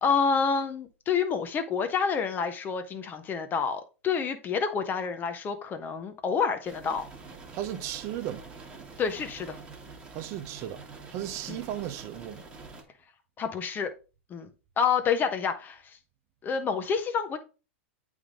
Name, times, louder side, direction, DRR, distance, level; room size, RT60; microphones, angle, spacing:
voice 1, 0.0-7.0 9.0-9.6 11.5-11.6 13.4-13.9 14.3-16.0 16.4-17.4, left 6 dB, 30° left, 1.1 m, -28 dB
sound 1, 6.6-12.8, right 4 dB, 15° right, 1.7 m, -46 dB
voice 2, 7.5-8.4 10.1-10.8 11.1-12.4, right 12 dB, 45° right, 0.9 m, -35 dB
8.5 x 3.6 x 3.8 m
hypercardioid pair, 110°, 7 cm